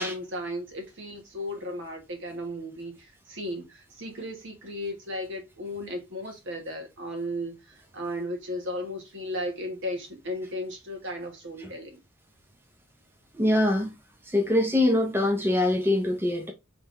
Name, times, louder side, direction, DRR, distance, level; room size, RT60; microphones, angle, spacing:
voice 1, 0.0-12.0, left 1 dB, 60° right, 1.5 m, -35 dB
voice 2, 13.3-13.9 14.3-16.5, left 1 dB, 10° right, 0.6 m, -23 dB
3.7 x 3.4 x 3.9 m
head